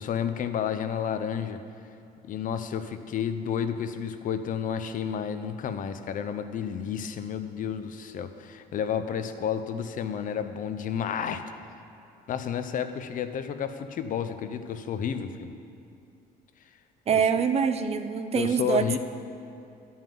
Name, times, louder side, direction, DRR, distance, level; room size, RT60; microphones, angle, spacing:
voice 1, 0.0-1.6 2.3-11.5 12.3-15.5 17.1-17.2 18.3-19.0, left 8 dB, 50° left, 10 dB, 0.6 m, -31 dB
voice 2, 17.1-18.8, right 7 dB, 40° right, 10 dB, 0.6 m, -24 dB
10.5 x 5.6 x 7.6 m, 2.6 s
cardioid pair, 110°, 17 cm